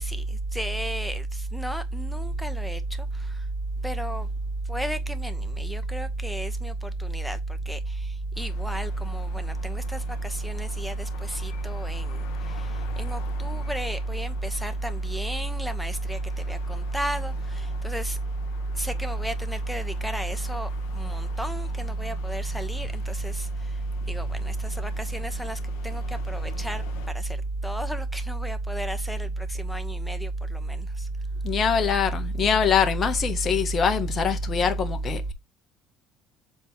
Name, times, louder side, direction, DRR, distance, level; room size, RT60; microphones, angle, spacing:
voice 1, 0.0-3.5 3.8-4.3 4.6-18.2 18.7-31.1, equal, 5° left, 1.6 m, -36 dB
sound 1, 8.3-27.1, left 8 dB, 75° left, 1.7 m, -47 dB
voice 2, 31.4-35.3, left 5 dB, 40° left, 1.4 m, -23 dB
7.6 x 4.4 x 3.4 m
hypercardioid pair, 70°, 0 cm